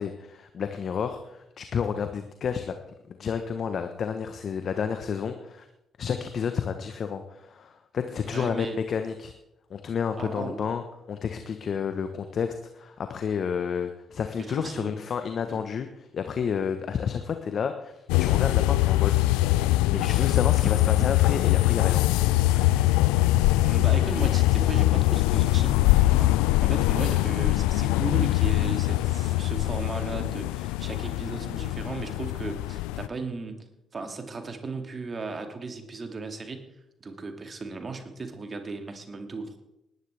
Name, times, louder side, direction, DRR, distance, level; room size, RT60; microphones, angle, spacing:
voice 1, 0.0-2.8 3.1-5.7 6.0-9.3 9.7-10.8 11.1-17.9 18.2-22.8, left 7 dB, 55° left, 7 dB, 1.0 m, -31 dB
voice 2, 8.2-8.8 10.2-10.7 14.4-14.9 15.5-15.6 23.4-26.4 26.6-33.6 33.9-36.7 37.0-39.6, right 3 dB, 40° right, 5 dB, 2.4 m, -36 dB
sound 1, 18.1-33.1, left 17 dB, 80° left, 0.4 m, -23 dB
19.5 x 11.0 x 3.4 m, 0.86 s
hypercardioid pair, 45°, 0 cm